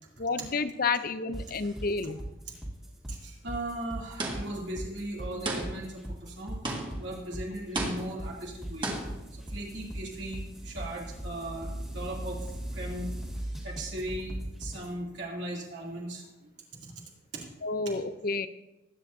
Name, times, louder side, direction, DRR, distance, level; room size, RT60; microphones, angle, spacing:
voice 1, 0.2-2.2 17.6-18.5, left 4 dB, 45° left, 12 dB, 0.6 m, -30 dB
sound 1, 1.3-14.9, right 1 dB, ahead, 2.1 m, -39 dB
voice 2, 3.1-6.5 7.0-8.9 9.5-12.4 12.7-13.1 13.6-16.2 17.3-17.4, right 1 dB, 60° right, -4 dB, 2.8 m, -38 dB
sound 2, 4.2-4.7 5.5-6.0 6.6-7.2 7.7-8.3 8.8-9.2, right 2 dB, 25° right, 1.7 m, -34 dB
21.0 x 9.1 x 2.7 m, 1.0 s
head